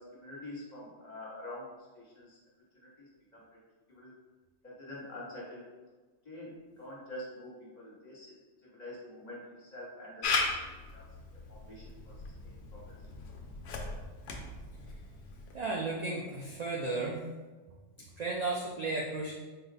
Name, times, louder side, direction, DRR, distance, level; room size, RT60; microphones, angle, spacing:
voice 1, 0.0-1.7 1.9-2.4 2.7-3.6 3.9-4.1 4.6-5.6 6.2-8.3 8.6-10.6 10.9-11.0 11.5-12.1 12.4-12.9, left 1 dB, 35° left, -6 dB, 1.2 m, -46 dB
Camera, 10.2-15.6, left 3 dB, 65° left, 0.8 m, -37 dB
voice 2, 15.5-17.2 18.2-19.3, right 3 dB, 70° right, -2 dB, 0.4 m, -34 dB
4.2 x 2.1 x 3.9 m, 1.3 s
omnidirectional pair, 1.2 m